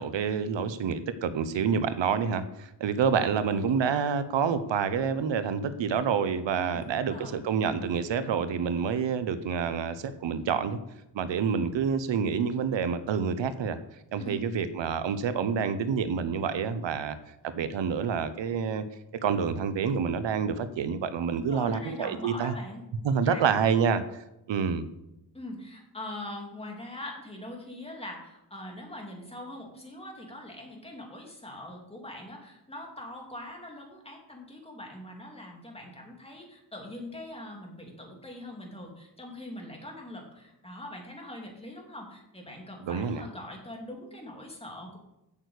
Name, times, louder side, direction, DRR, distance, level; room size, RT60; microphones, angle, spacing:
voice 1, 0.0-10.8 11.1-13.8 14.1-17.2 17.5-18.8 19.2-22.5 23.0-24.8 42.8-43.2, right 6 dB, 85° right, 12 dB, 0.9 m, -28 dB
voice 2, 6.6-7.4 14.2-14.4 21.3-22.8 23.2-23.4 25.3-45.0, left 1 dB, 15° left, 0 dB, 3.0 m, -42 dB
8.6 x 6.5 x 8.3 m, 0.90 s
wide cardioid pair, 125°, 43 cm